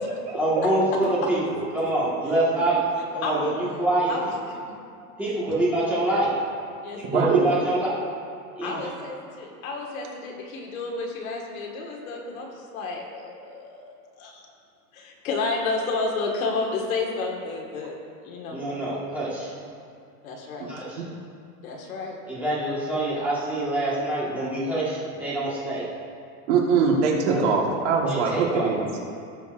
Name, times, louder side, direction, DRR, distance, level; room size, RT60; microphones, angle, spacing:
voice 1, 0.3-2.8 3.1-4.3 5.2-6.3 6.9-7.9 8.5-8.9 18.5-19.5 20.6-21.0 22.3-25.9 27.2-27.4 28.1-28.7, right 1 dB, 5° right, -9 dB, 1.5 m, -26 dB
voice 2, 3.2-3.5 4.1-4.3 4.7-4.8 6.8-7.7 8.6-13.9 14.2-14.5 14.9-18.0 18.2-18.6 20.2-20.7 21.6-22.2, left 3 dB, 65° left, 0 dB, 1.8 m, -31 dB
voice 3, 7.0-7.5 20.6-20.7 26.5-28.8, right 5 dB, 50° right, -1 dB, 1.5 m, -22 dB
17.5 x 6.8 x 2.5 m, 2.3 s
supercardioid pair, 175°, 46 cm